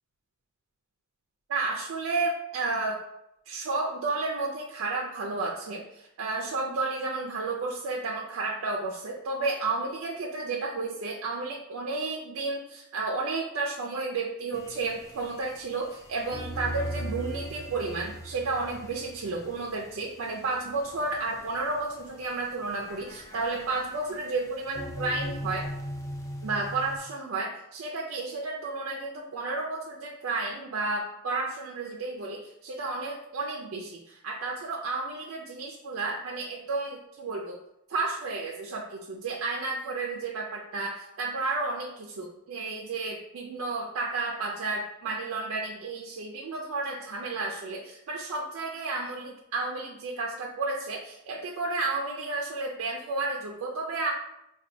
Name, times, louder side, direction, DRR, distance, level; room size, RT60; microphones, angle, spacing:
voice 1, 1.5-3.0 3.5-25.7 26.4-37.6 37.9-54.1, right 3 dB, 75° right, -1 dB, 0.4 m, -32 dB
sound 1, 14.5-27.0, equal, 15° left, 0.3 m, -40 dB
4.3 x 2.3 x 2.6 m, 0.83 s
head